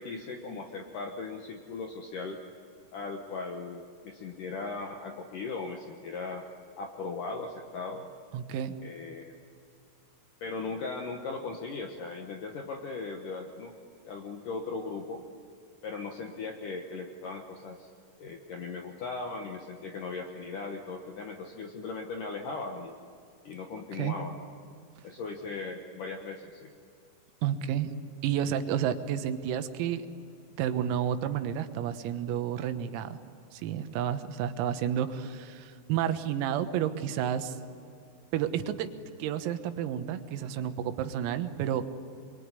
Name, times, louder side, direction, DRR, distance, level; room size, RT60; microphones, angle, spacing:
voice 1, 0.0-2.4 2.9-6.4 6.8-8.1 8.8-9.4 10.4-13.7 14.0-15.2 15.8-17.9 18.2-23.0 23.4-24.3 25.0-26.7, left 4 dB, 85° left, 3 dB, 1.8 m, -38 dB
voice 2, 8.3-8.8 23.9-24.2 27.4-27.9 28.2-30.1 30.6-33.2 33.5-37.6 38.3-38.9 39.2-41.9, right 9 dB, 85° right, 9 dB, 3.9 m, -31 dB
26.5 x 23.0 x 9.8 m, 2.4 s
omnidirectional pair, 6.0 m